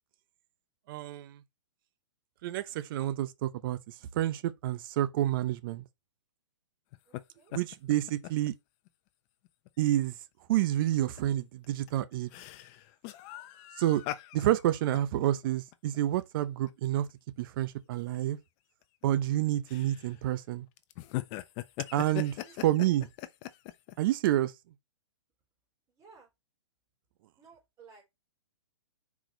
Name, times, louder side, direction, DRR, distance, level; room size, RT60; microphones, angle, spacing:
voice 1, 0.9-1.4 2.4-5.8 7.5-8.5 9.8-10.2 10.5-12.3 13.8-14.0 14.3-17.1 17.4-18.4 19.0-20.7 21.9-22.3 22.6-23.1 24.0-24.5, right 13 dB, 45° right, 0.9 m, -29 dB
sound 1, 6.9-7.2 7.5-8.5 8.9-9.0 9.4-9.7 10.5-10.6 11.0-11.2 11.6-16.7 17.1-17.2 17.9-18.2 18.8-19.3 19.7-20.3 20.8-23.9, left 15 dB, 35° left, 0.8 m, -41 dB
voice 2, 7.1-7.5 22.2-23.0 25.9-26.3 27.4-28.1, right 5 dB, 20° right, 4.6 m, -57 dB
6.1 x 4.9 x 4.0 m
hypercardioid pair, 130°, 15 cm